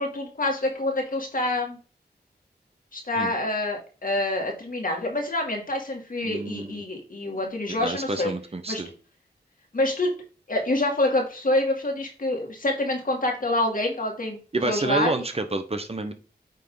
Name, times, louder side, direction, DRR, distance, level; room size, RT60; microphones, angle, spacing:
voice 1, 0.0-1.8 2.9-8.3 8.7-8.8 9.7-10.1 10.5-14.4 14.6-15.2, left 1 dB, 55° left, 2 dB, 2.3 m, -26 dB
voice 2, 6.2-6.8 7.7-8.9 14.5-16.1, right 2 dB, 35° right, 7 dB, 1.0 m, -29 dB
9.1 x 3.4 x 3.9 m, 0.36 s
cardioid pair, 50°, 17 cm